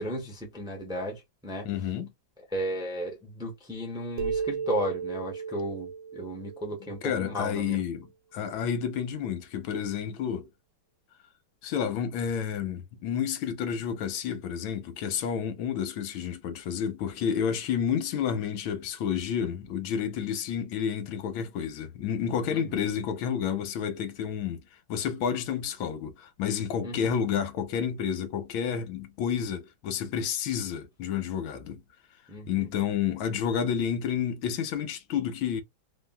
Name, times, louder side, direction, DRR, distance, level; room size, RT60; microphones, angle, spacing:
voice 1, 0.0-1.7 2.5-7.8 22.5-22.8 26.8-27.1 32.3-32.7, equal, 5° right, 0.7 m, -34 dB
voice 2, 1.6-2.1 7.0-10.5 11.6-24.6 24.9-31.8 32.5-35.6, left 8 dB, 90° left, 1.5 m, -30 dB
sound 1, 4.2-7.7, right 6 dB, 70° right, 1.3 m, -35 dB
3.6 x 2.2 x 2.2 m
omnidirectional pair, 2.2 m